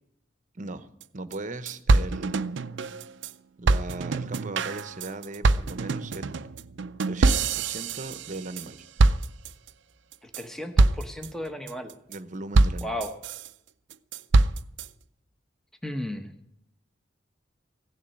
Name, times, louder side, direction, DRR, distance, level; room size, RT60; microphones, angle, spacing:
voice 1, 0.5-0.9 1.1-2.6 3.6-6.4 7.1-8.9 12.1-13.0, right 2 dB, 40° right, 12 dB, 0.9 m, -38 dB
sound 1, 1.0-1.1 1.3-1.4 1.7-3.3 3.7-8.7 9.0-9.7 10.1-10.4 10.8-11.3 11.7-12.2 12.5-13.5 13.9-14.9, right 3 dB, 70° right, 0.5 m, -24 dB
voice 2, 10.2-11.9 12.8-13.1 15.8-16.3, left 1 dB, 5° left, 6 dB, 0.9 m, -34 dB
16.0 x 7.2 x 9.9 m, 0.76 s
head